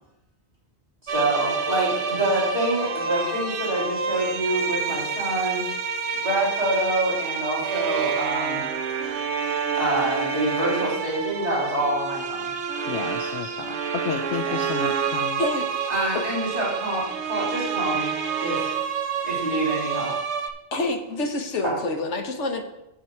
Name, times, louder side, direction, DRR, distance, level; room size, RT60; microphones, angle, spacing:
voice 1, 1.0-5.6 6.2-8.7 9.7-12.5 13.4-13.5 14.4-14.6 15.9-18.6 19.2-20.1 21.6-21.7, right 1 dB, 35° right, -8 dB, 3.1 m, -26 dB
sound 1, 1.1-20.5, right 6 dB, 75° right, 1.1 m, -28 dB
voice 2, 12.9-15.4, left 8 dB, 75° left, 7 dB, 0.9 m, -32 dB
voice 3, 15.4-15.9 20.7-22.6, left 2 dB, 90° left, 4 dB, 1.4 m, -27 dB
8.2 x 8.0 x 4.4 m, 0.88 s
omnidirectional pair, 1.2 m